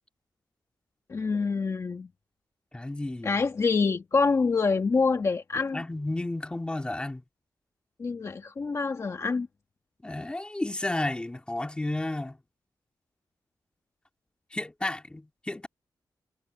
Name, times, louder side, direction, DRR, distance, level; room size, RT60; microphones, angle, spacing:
voice 1, 1.1-2.1 3.2-5.8 8.0-9.5, left 4 dB, 40° left, 1.6 m, -26 dB
voice 2, 2.7-3.3 5.7-7.2 10.0-12.4 14.5-15.7, left 2 dB, 10° left, 2.4 m, -32 dB
wide cardioid pair, 170°, 8 cm